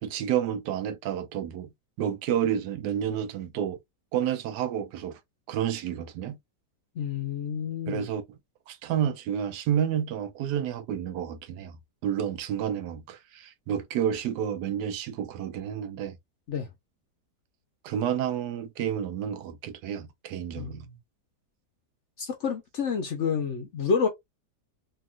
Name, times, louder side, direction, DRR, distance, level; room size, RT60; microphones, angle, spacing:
voice 1, 0.0-1.7 2.0-3.8 4.1-5.2 5.5-6.4 7.9-8.2 8.7-11.8 12.0-16.2 17.8-20.9, right 9 dB, 80° right, 1.1 m, -30 dB
voice 2, 7.0-8.1 16.5-16.7 20.6-21.0 22.2-24.1, left 6 dB, 60° left, 0.8 m, -29 dB
2.9 x 2.8 x 2.4 m
omnidirectional pair, 1.8 m